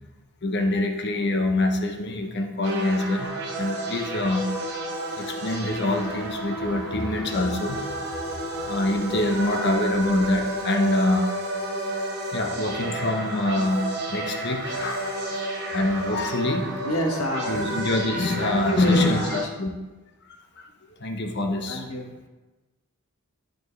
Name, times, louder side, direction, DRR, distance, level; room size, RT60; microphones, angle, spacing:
voice 1, 0.4-3.3 3.6-4.5 5.2-7.8 8.6-11.4 12.3-15.3 15.7-16.7 17.5-19.7 20.6-20.7 21.0-21.8, left 2 dB, 50° left, 4 dB, 0.8 m, -25 dB
sound 1, 2.6-19.4, right 1 dB, 55° right, 1.2 m, -31 dB
voice 2, 16.1-17.5 18.4-19.5 21.7-22.1, equal, 75° left, 1 dB, 1.3 m, -29 dB
11.0 x 4.5 x 3.2 m, 1.2 s
head